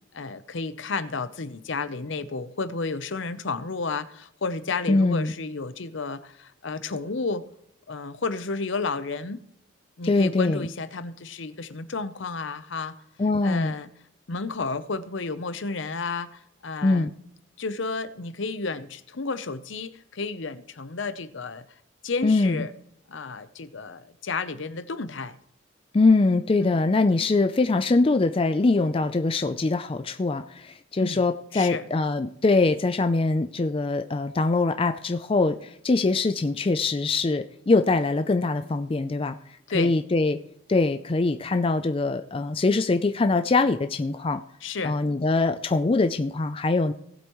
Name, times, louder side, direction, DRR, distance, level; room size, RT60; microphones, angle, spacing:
voice 1, 0.1-7.4 7.9-9.4 10.0-12.9 13.4-13.9 14.3-17.1 17.6-21.6 22.0-22.7 23.1-25.4 26.6-26.8 31.0-31.2 31.5-31.8 39.7-39.9 44.6-45.0, left 4 dB, 65° left, 13 dB, 0.7 m, -32 dB
voice 2, 4.9-5.3 10.1-10.7 13.2-13.7 16.8-17.1 22.2-22.6 25.9-39.4 39.7-40.4 40.7-44.4 44.8-46.9, left 3 dB, 25° left, 9 dB, 0.4 m, -23 dB
18.0 x 8.0 x 3.1 m, 0.74 s
head